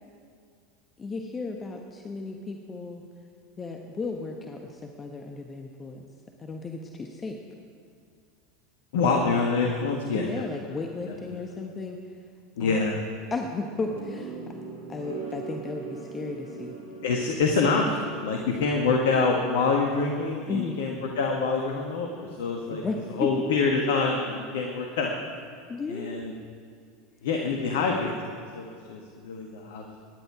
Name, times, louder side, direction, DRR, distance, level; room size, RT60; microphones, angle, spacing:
voice 1, 1.0-3.0 3.6-6.1 6.4-7.4 10.1-12.2 12.6-12.9 13.3-14.4 14.9-16.8 20.5-20.8 22.7-23.3 25.7-26.2, left 3 dB, 25° left, 3 dB, 1.3 m, -34 dB
voice 2, 8.9-10.4 11.1-11.2 12.6-13.0 17.0-22.8 23.2-25.2 25.9-26.3 27.2-30.0, left 4 dB, 65° left, 1 dB, 1.6 m, -26 dB
sound 1, 13.9-19.0, right 4 dB, 75° right, 4.9 m, -40 dB
24.0 x 11.0 x 4.9 m, 2.2 s
figure-of-eight pair, 80°, 0 cm